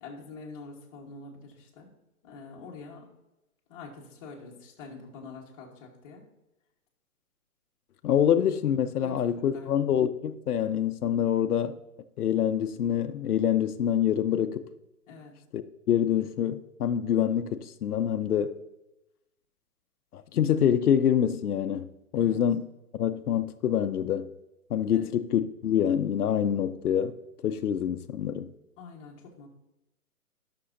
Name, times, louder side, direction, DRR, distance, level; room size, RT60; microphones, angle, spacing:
voice 1, 0.0-1.9 2.2-3.1 3.7-6.2 9.0-9.7 14.3-14.6 15.1-15.3 22.1-22.4 24.9-25.0 28.8-29.5, left 4 dB, 20° left, 1.2 m, -46 dB
voice 2, 8.0-11.7 12.2-14.6 15.5-15.6 15.9-18.6 20.1-21.9 22.1-22.7 22.9-24.3 24.7-27.1 27.4-28.5, left 9 dB, 85° left, 0.7 m, -26 dB
11.5 x 6.2 x 2.6 m
hypercardioid pair, 165°, 44 cm